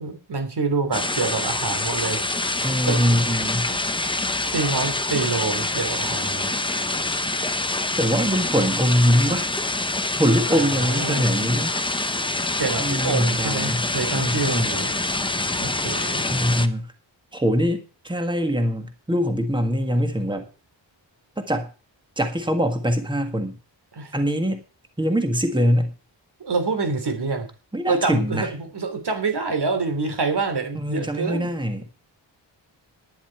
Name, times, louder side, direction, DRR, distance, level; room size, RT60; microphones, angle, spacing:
voice 1, 0.0-2.2 2.9-3.0 3.7-3.8 4.5-6.6 10.5-11.3 12.6-14.9 15.6-16.2 24.0-24.1 26.4-27.5 27.9-31.5, right 4 dB, 60° right, 7 dB, 3.0 m, -26 dB
sound 1, 0.9-16.7, left 2 dB, 10° left, 0.7 m, -26 dB
voice 2, 2.6-3.7 7.9-9.5 10.1-11.8 12.8-14.7 16.3-16.9 17.3-20.5 21.4-21.7 22.2-23.6 24.1-24.6 25.0-25.9 27.7-28.5 30.7-32.0, equal, 10° right, 6 dB, 1.7 m, -23 dB
11.5 x 10.5 x 4.5 m, 0.35 s
wide cardioid pair, 160°, 46 cm